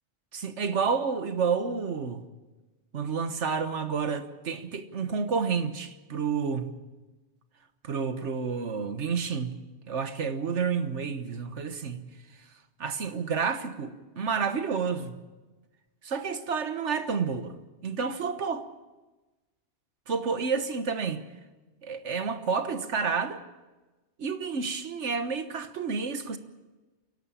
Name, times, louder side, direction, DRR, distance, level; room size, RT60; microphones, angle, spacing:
voice 1, 0.3-2.2 2.9-6.7 7.8-9.6 9.9-12.1 12.8-15.1 16.0-18.7 20.1-21.2 21.8-23.4 24.2-26.4, right 5 dB, 80° right, 1.5 m, -30 dB
28.0 x 11.5 x 8.6 m
omnidirectional pair, 1.2 m